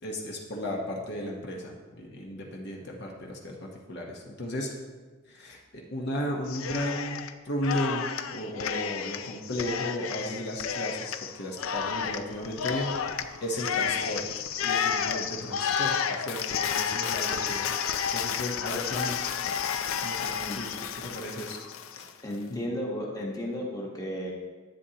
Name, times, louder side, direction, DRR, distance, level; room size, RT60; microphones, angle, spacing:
voice 1, 0.0-4.7 5.3-13.0 13.4-17.7 18.1-19.3 20.0-20.7 21.0-21.6 21.9-22.1 22.5-22.6, left 1 dB, 55° left, -1 dB, 1.0 m, -35 dB
Cheering, 6.5-7.3 7.6-22.1, left 7 dB, 85° left, 0.5 m, -31 dB
voice 2, 22.2-24.3, equal, 20° left, -3 dB, 1.2 m, -33 dB
10.5 x 8.3 x 2.8 m, 1.4 s
head